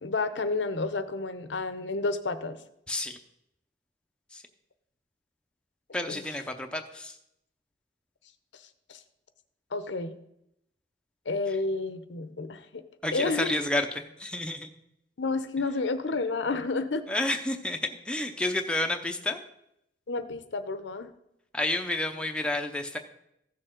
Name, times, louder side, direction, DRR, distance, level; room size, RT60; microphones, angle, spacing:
voice 1, 0.0-2.6 6.1-6.2 8.9-9.0 9.7-10.1 11.3-12.8 13.1-13.6 15.2-17.1 20.1-21.1, left 3 dB, 85° left, 11 dB, 0.8 m, -30 dB
voice 2, 2.9-3.2 4.3-4.4 5.9-7.2 13.0-14.7 17.1-19.4 21.5-23.0, left 1 dB, 5° left, 4 dB, 0.7 m, -30 dB
15.0 x 6.7 x 3.8 m, 0.79 s
head